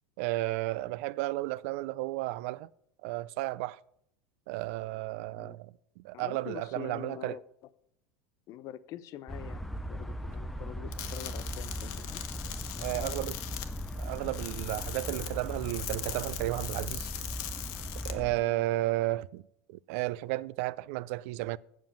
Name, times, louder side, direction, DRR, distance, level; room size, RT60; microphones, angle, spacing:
voice 1, 0.2-2.7 3.0-3.8 4.5-7.4 12.8-13.4 14.0-17.1 18.0-19.4 19.7-21.6, right 18 dB, 65° right, 0.3 m, -33 dB
voice 2, 6.1-7.4 8.5-12.2 12.7-13.1 18.4-18.6, left 12 dB, 45° left, 0.6 m, -45 dB
sound 1, 9.3-18.4, equal, ahead, 0.5 m, -38 dB
sound 2, 10.9-18.1, left 12 dB, 60° left, 1.2 m, -41 dB
7.6 x 7.4 x 7.0 m
supercardioid pair, 140°, 8 cm